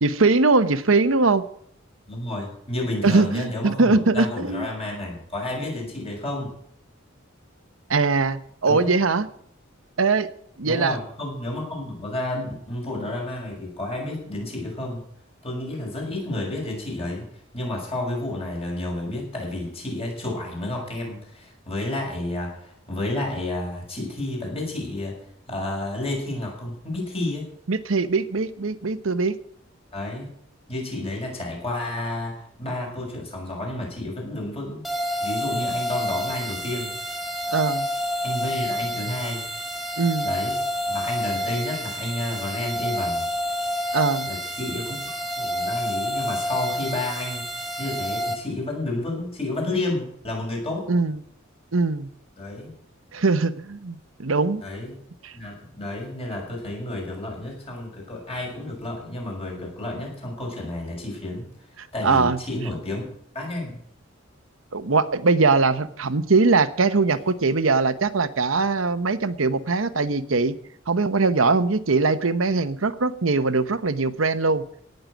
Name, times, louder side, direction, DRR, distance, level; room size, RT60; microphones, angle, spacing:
voice 1, 0.0-1.4 3.0-4.7 7.9-9.3 10.0-10.3 10.6-11.0 27.7-29.3 37.5-37.9 40.0-40.3 43.9-44.3 50.9-51.2 51.7-52.1 53.1-54.6 55.2-55.3 61.8-62.4 64.7-70.5 70.9-74.6, right 3 dB, 85° right, 13 dB, 1.0 m, -21 dB
voice 2, 2.1-6.5 8.6-8.8 10.6-15.0 15.4-25.2 25.5-27.5 29.9-30.3 30.7-34.8 35.2-36.9 38.2-39.4 40.2-40.5 40.9-43.3 44.2-50.9 52.4-52.7 54.6-54.9 55.3-61.5 61.9-63.0 63.3-63.7, left 1 dB, 30° left, -1 dB, 6.3 m, -31 dB
sound 1, 34.8-48.4, equal, ahead, 2.1 m, -29 dB
17.5 x 6.7 x 9.1 m, 0.68 s
head